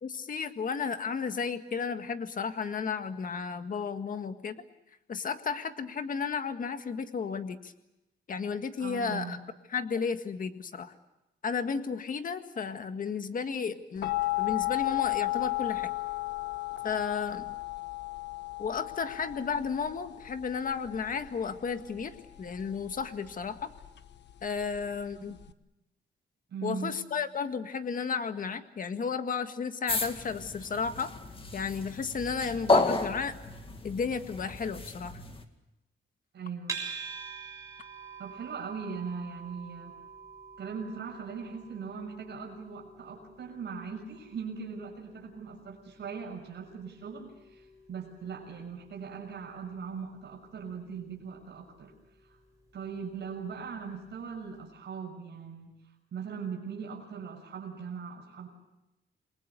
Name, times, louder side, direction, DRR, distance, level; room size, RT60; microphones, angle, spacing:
voice 1, 0.0-4.6 5.1-7.7 8.3-9.4 9.7-10.9 11.4-14.1 14.4-15.9 16.8-17.5 18.6-23.7 24.4-25.4 26.6-31.1 31.5-33.4 33.8-35.2, left 6 dB, 45° left, 8 dB, 1.8 m, -33 dB
voice 2, 8.8-9.4 25.2-25.3 26.5-26.9 36.3-36.9 38.2-39.9 40.6-51.9 52.2-52.4 52.7-55.8 56.1-58.5, right 6 dB, 65° right, -1 dB, 6.4 m, -40 dB
sound 1, 14.0-25.5, left 20 dB, 65° left, 1.2 m, -35 dB
sound 2, 29.9-35.4, left 2 dB, 30° left, 2.2 m, -32 dB
sound 3, 36.7-53.9, right 5 dB, 15° right, 6.7 m, -48 dB
29.0 x 22.0 x 6.8 m, 0.94 s
wide cardioid pair, 160°, 20 cm